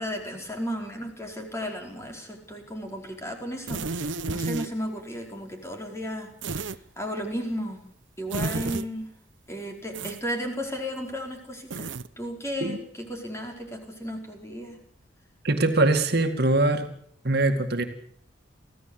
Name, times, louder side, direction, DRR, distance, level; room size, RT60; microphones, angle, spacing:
voice 1, 0.0-7.8 8.2-9.1 9.5-14.8, equal, 15° left, 2 dB, 4.7 m, -34 dB
sound 1, 3.7-4.7 6.4-6.8 8.3-8.8 9.9-10.2 11.7-12.1, right 3 dB, 80° right, 0.9 m, -31 dB
voice 2, 15.4-16.9 17.2-17.8, right 2 dB, 55° right, 6 dB, 2.2 m, -22 dB
24.5 x 16.0 x 8.0 m, 0.67 s
head